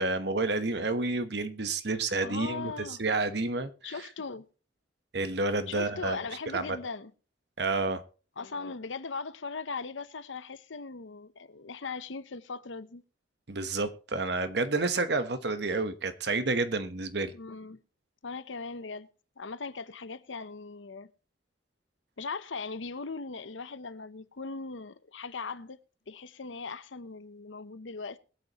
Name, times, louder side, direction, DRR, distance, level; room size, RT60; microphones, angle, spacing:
voice 1, 0.0-3.9 5.1-6.2 6.5-6.7 7.6-8.0 13.5-17.3, right 3 dB, 60° right, 1.1 m, -30 dB
voice 2, 2.2-3.0 3.8-4.5 5.7-7.1 8.4-13.0 17.3-17.8 18.2-19.1 19.4-21.1 22.2-25.8 26.1-28.2, left 4 dB, 90° left, 0.8 m, -39 dB
21.5 x 8.1 x 3.0 m
head